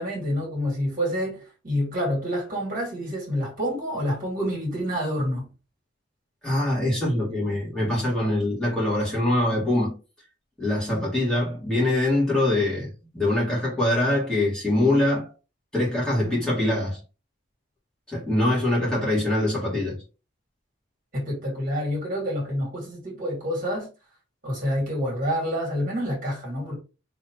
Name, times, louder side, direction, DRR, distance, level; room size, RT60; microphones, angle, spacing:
voice 1, 0.0-5.5 21.1-23.9 24.4-26.7, equal, 45° right, 2.6 m, -28 dB
voice 2, 6.4-9.9 10.6-15.3 15.7-17.0 18.1-20.0, left 1 dB, 5° left, 2.4 m, -23 dB
4.3 x 3.7 x 3.2 m
head